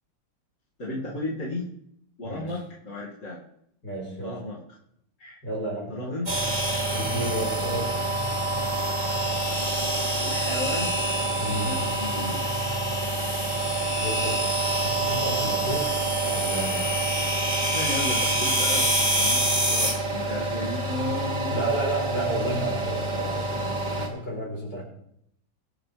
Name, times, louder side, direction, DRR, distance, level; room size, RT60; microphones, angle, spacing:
voice 1, 0.8-1.7 2.2-3.4 4.2-4.6 5.2-5.4 5.9-6.3 10.2-11.0 11.4-12.4 17.7-21.6, left 1 dB, 35° left, -7 dB, 2.7 m, -34 dB
voice 2, 2.2-2.6 3.8-4.4 5.4-6.0 6.9-8.0 11.4-11.9 14.0-14.5 14.8-16.9 21.5-24.8, right 1 dB, 55° left, -2 dB, 5.3 m, -32 dB
sound 1, 6.3-24.1, right 1 dB, 20° right, 2.3 m, -26 dB
24.5 x 8.8 x 3.5 m, 0.73 s
omnidirectional pair, 2.2 m